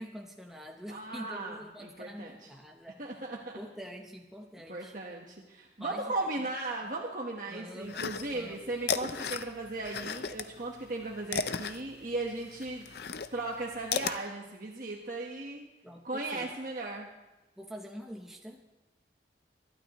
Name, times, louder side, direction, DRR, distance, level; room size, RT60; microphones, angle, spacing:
voice 1, 0.0-3.2 3.5-4.9 5.8-6.3 7.5-8.7 15.8-16.5 17.6-18.6, equal, ahead, 1 dB, 0.8 m, -45 dB
voice 2, 0.9-2.3 3.0-3.6 4.7-12.9 13.3-15.7 16.0-17.1, right 2 dB, 50° right, -1 dB, 1.3 m, -37 dB
sound 1, 7.9-8.5 8.8-10.5 10.8-14.2, left 6 dB, 60° left, 0.6 m, -34 dB
23.5 x 12.0 x 3.1 m, 1.1 s
head